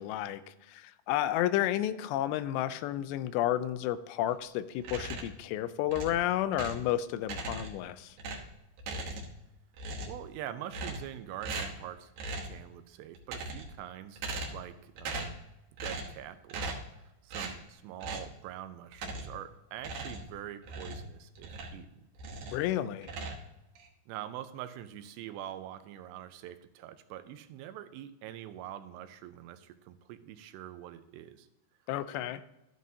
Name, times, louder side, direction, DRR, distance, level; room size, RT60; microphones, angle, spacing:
voice 1, 0.0-8.2 22.5-23.1 31.9-32.4, left 12 dB, 90° left, 14 dB, 2.8 m, -31 dB
sound 1, 4.8-5.4 5.9-6.9 7.2-7.9 8.2-9.5 9.7-10.3 10.7-11.2 11.4-11.8 12.2-12.6 13.1-13.8 14.2-14.7 15.0-15.4 15.8-16.2 16.5-16.9 17.3-17.6 18.0-18.3 18.9-19.4 19.8-21.8 22.2-22.7 23.0-23.9, right 2 dB, 65° right, 2.6 m, -39 dB
voice 2, 10.1-12.1 12.4-15.4 15.8-16.7 17.0-22.0 24.1-31.5, right 11 dB, 85° right, 10 dB, 2.8 m, -44 dB
13.5 x 9.3 x 2.8 m, 0.93 s
omnidirectional pair, 4.9 m